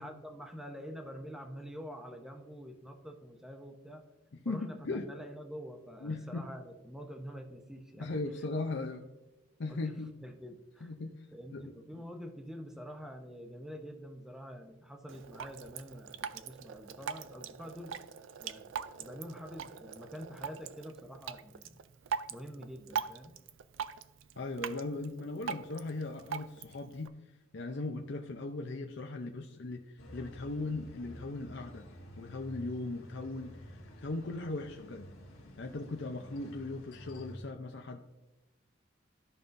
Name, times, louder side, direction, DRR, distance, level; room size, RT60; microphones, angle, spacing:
voice 1, 0.0-4.0 4.4-8.1 9.7-9.8 10.2-10.9 11.3-18.0 18.4-18.7 19.0-21.8 22.3-23.3, equal, 5° right, 4 dB, 0.8 m, -46 dB
voice 2, 4.4-5.1 6.0-6.4 8.0-9.1 9.6-10.1 10.8-11.2 11.5-12.0 24.4-27.1 27.5-31.8 32.2-33.6 34.0-35.1 35.6-38.0, left 2 dB, 65° left, 3 dB, 0.6 m, -38 dB
Drip, 15.1-27.1, right 7 dB, 70° right, 0.4 m, -42 dB
sound 1, 30.0-37.4, equal, 85° left, 1.5 m, -51 dB
13.5 x 5.5 x 2.6 m, 1.0 s
head